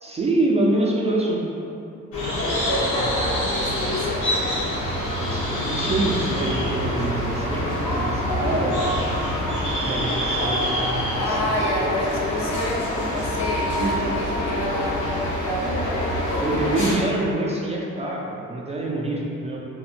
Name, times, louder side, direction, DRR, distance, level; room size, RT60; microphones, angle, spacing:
voice 1, 0.0-1.5 2.9-3.1 5.2-9.1 9.8-11.9 13.8-14.1 16.4-19.6, right 2 dB, 20° right, -4 dB, 0.4 m, -26 dB
sound 1, 2.1-16.9, equal, 90° left, 0.9 m, -25 dB
voice 2, 2.5-4.6 11.1-16.4, left 1 dB, 65° left, -3 dB, 0.7 m, -30 dB
3.5 x 2.2 x 2.4 m, 2.7 s
cardioid pair, 90°, 30 cm